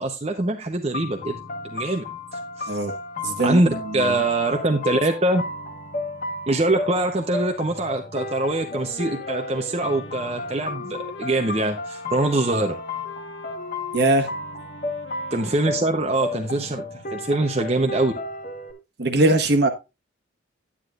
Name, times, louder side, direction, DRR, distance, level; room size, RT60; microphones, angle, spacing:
voice 1, 0.0-1.4 1.6-2.2 2.6-2.8 3.4-3.7 3.9-5.4 6.5-12.8 15.3-16.8 17.1-18.1, right 2 dB, 30° right, 0.9 m, -23 dB
sound 1, 0.9-18.7, left 2 dB, 40° left, 1.4 m, -34 dB
voice 2, 3.2-4.2 13.9-14.3 19.0-19.7, right 2 dB, 55° right, 1.4 m, -21 dB
Wind instrument woodwind instrument, 8.6-17.0, left 3 dB, 70° left, 1.2 m, -42 dB
9.8 x 9.8 x 2.5 m
head